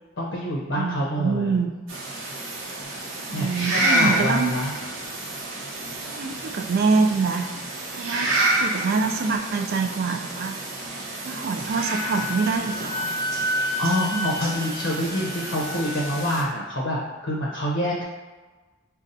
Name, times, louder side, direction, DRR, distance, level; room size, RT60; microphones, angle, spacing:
voice 1, 0.2-1.6 3.3-4.7 13.8-18.0, equal, 60° left, -3 dB, 0.6 m, -26 dB
voice 2, 0.8-1.7 3.3-4.5 6.0-7.5 8.0-8.3 8.6-10.6 11.2-13.1 14.1-14.3, right 4 dB, 50° right, 5 dB, 0.3 m, -25 dB
sound 1, 1.9-16.4, right 2 dB, 90° right, 0.8 m, -29 dB
Wind instrument woodwind instrument, 11.8-16.2, left 2 dB, 15° left, 0.7 m, -31 dB
5.2 x 2.2 x 2.5 m, 1.3 s
head